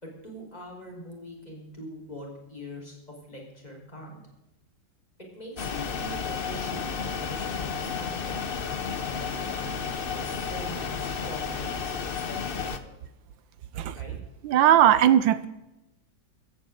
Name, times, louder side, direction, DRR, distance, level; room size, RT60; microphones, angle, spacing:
voice 1, 0.0-4.2 5.3-8.3 9.0-13.0 13.9-14.1, equal, 20° left, 4.7 m, -43 dB
sound 1, 5.6-12.8, left 6 dB, 45° left, 0.7 m, -32 dB
voice 2, 14.4-15.5, right 10 dB, 80° right, 1.4 m, -19 dB
15.5 x 15.5 x 3.9 m
omnidirectional pair, 2.1 m